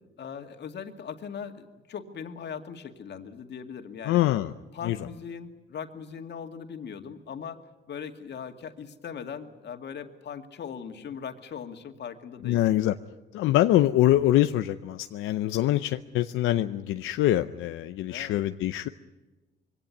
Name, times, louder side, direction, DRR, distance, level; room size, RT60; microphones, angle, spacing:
voice 1, 0.2-4.2 4.7-7.6 7.9-12.7 18.1-18.4, left 7 dB, 60° left, 6 dB, 2.2 m, -39 dB
voice 2, 4.1-4.5 4.8-5.0 12.4-13.0 13.3-18.9, left 14 dB, 90° left, 9 dB, 0.7 m, -24 dB
23.0 x 17.5 x 9.4 m, 1.2 s
cardioid pair, 90°, 20 cm